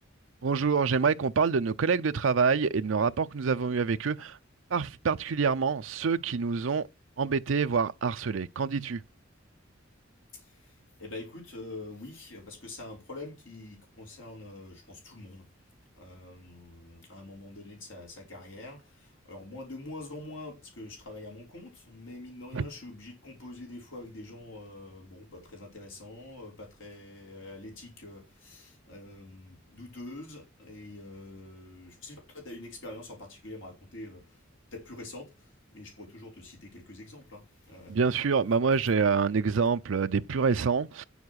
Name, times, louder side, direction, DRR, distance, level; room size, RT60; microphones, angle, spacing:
voice 1, 0.4-4.4 4.7-6.9 7.2-9.0 22.5-22.7 37.9-41.0, right 5 dB, 70° right, 0.5 m, -26 dB
voice 2, 10.3-15.4 16.0-34.4 34.7-38.2, left 2 dB, 70° left, 5.0 m, -45 dB
9.5 x 7.2 x 6.3 m
head